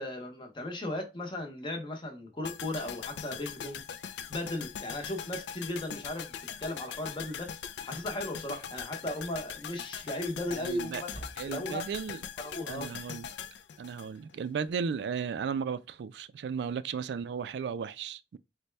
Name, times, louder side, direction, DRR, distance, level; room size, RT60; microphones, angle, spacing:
voice 1, 0.0-3.8 4.3-7.5 7.8-11.1 11.4-11.8 12.4-12.9, left 1 dB, 25° left, 0.8 m, -36 dB
sound 1, 2.4-14.6 14.9-15.0, left 8 dB, 75° left, 0.3 m, -41 dB
voice 2, 10.5-11.0 11.4-12.2 12.7-13.3 13.8-18.4, right 6 dB, 70° right, 0.3 m, -35 dB
sound 2, 11.0-11.9, equal, 60° left, 1.1 m, -48 dB
4.1 x 2.2 x 3.2 m
head